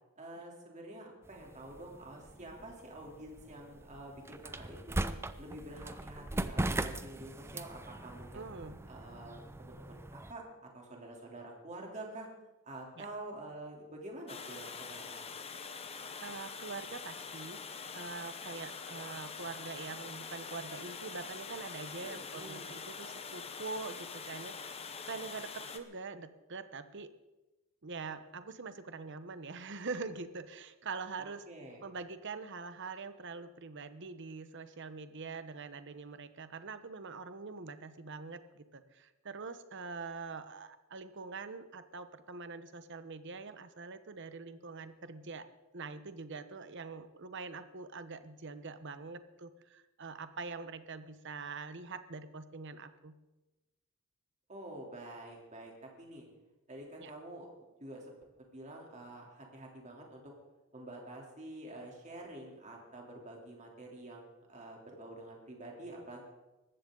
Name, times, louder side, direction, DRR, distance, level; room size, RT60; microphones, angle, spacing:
voice 1, 0.2-5.1 5.4-8.4 8.9-12.3 12.6-15.2 22.2-22.8 31.2-31.8 54.5-56.3 56.7-58.1 58.5-60.3 60.7-66.2, right 1 dB, 30° right, 0 dB, 3.2 m, -48 dB
sound 1, 1.2-10.3, right 1 dB, 10° right, 0.5 m, -40 dB
voice 2, 8.3-8.9 13.0-13.1 16.2-17.6 17.9-27.1 27.8-31.4 31.8-45.5 45.7-53.2 57.0-57.1, right 4 dB, 55° right, 11 dB, 0.9 m, -44 dB
Water, 14.3-25.8, left 5 dB, 25° left, 0.9 m, -44 dB
19.5 x 14.5 x 3.9 m, 1.1 s
head